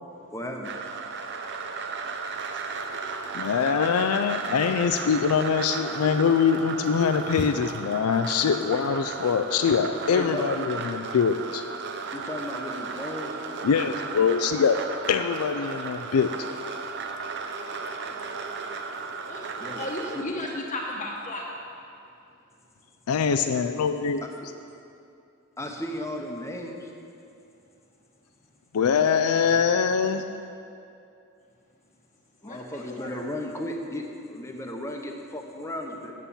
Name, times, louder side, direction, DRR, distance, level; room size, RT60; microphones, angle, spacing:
voice 1, 0.3-0.7 10.1-10.4 12.1-13.4 19.6-19.8 20.1-20.3 25.6-26.9 32.4-36.1, left 1 dB, 15° left, 2 dB, 0.9 m, -35 dB
sound 1, 0.6-20.2, right 4 dB, 55° right, 0.7 m, -35 dB
voice 2, 3.3-11.6 13.6-14.8 15.1-16.3 23.1-24.2 28.7-30.4, left 6 dB, 85° left, 9 dB, 0.4 m, -23 dB
voice 3, 19.8-21.5 32.4-33.2, left 1 dB, 35° left, -3 dB, 1.0 m, -34 dB
9.2 x 7.3 x 7.0 m, 2.6 s
head